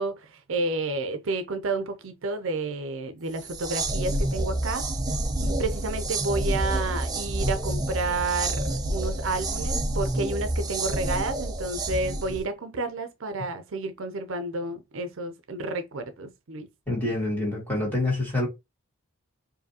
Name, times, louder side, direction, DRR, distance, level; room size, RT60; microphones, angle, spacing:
voice 1, 0.0-4.8 5.4-16.7, right 3 dB, 65° right, 0.5 m, -30 dB
sound 1, 3.4-12.4, right 1 dB, 20° right, 0.5 m, -28 dB
voice 2, 16.9-18.5, left 2 dB, 10° left, 1.9 m, -26 dB
4.8 x 2.7 x 2.7 m
head